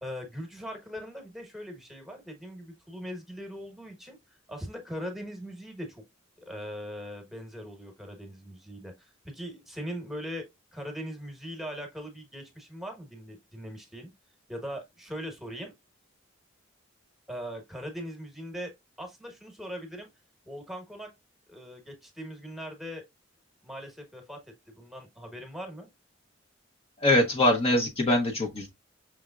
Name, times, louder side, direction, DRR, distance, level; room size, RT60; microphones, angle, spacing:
voice 1, 0.0-4.2 4.5-6.0 6.4-10.5 10.7-14.1 14.5-15.7 17.3-18.7 19.0-20.1 20.4-21.1 21.5-23.0 23.6-24.4 24.7-25.9, equal, ahead, 1.2 m, -40 dB
voice 2, 27.0-28.7, left 1 dB, 30° left, 0.8 m, -23 dB
5.9 x 3.4 x 2.4 m
head